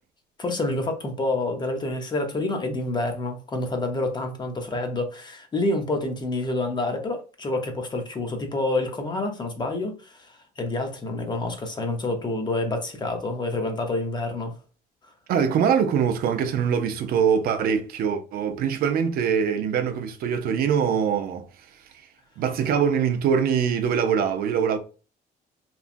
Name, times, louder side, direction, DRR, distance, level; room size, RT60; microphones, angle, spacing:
voice 1, 0.4-14.6, left 2 dB, 25° left, 0.7 m, -28 dB
voice 2, 15.3-21.5 22.4-24.8, right 7 dB, 65° right, 0.4 m, -23 dB
3.0 x 2.2 x 2.5 m
cardioid pair, 110°, 17 cm